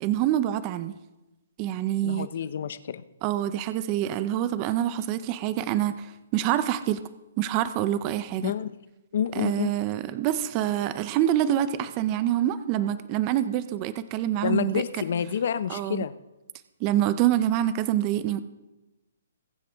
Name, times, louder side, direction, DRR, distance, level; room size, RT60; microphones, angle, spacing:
voice 1, 0.0-0.9 1.6-2.3 3.2-7.0 7.4-8.5 9.4-14.8 15.7-16.1 16.8-18.4, right 12 dB, 20° right, 13 dB, 0.5 m, -26 dB
voice 2, 2.0-3.0 8.4-8.8 9.1-9.7 14.4-16.1, left 8 dB, 50° left, 15 dB, 0.6 m, -28 dB
21.0 x 7.9 x 3.5 m, 1.0 s
hypercardioid pair, 170°, 0 cm